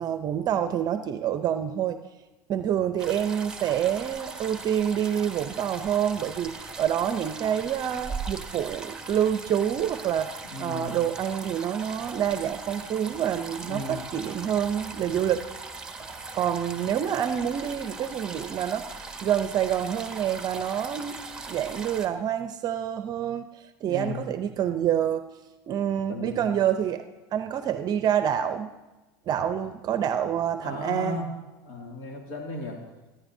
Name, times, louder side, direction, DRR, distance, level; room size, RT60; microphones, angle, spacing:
voice 1, 0.0-2.0 2.5-15.4 16.0-25.2 25.7-27.0 27.3-28.7 29.3-31.2, right 9 dB, 40° right, 9 dB, 0.6 m, -27 dB
sound 1, 3.0-22.1, right 3 dB, 5° right, 1.1 m, -39 dB
voice 2, 10.5-10.9 13.6-14.0 23.8-24.3 26.1-26.4 30.6-31.4 31.6-32.9, left 2 dB, 75° left, 0 dB, 2.4 m, -35 dB
24.5 x 10.0 x 2.7 m, 1.1 s
supercardioid pair, 115°, 10 cm